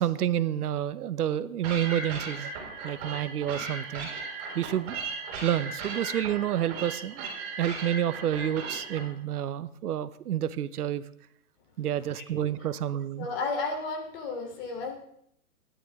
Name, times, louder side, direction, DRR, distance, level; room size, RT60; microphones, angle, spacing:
voice 1, 0.0-2.5 2.8-4.1 4.5-5.0 5.4-7.3 7.6-11.0 11.8-13.3, right 11 dB, 85° right, 15 dB, 0.9 m, -29 dB
sound 1, 1.6-9.0, right 4 dB, 40° right, 5.9 m, -37 dB
voice 2, 13.2-15.0, left 3 dB, 40° left, 2 dB, 3.3 m, -32 dB
16.0 x 11.0 x 3.6 m, 0.71 s
hypercardioid pair, 155°, 44 cm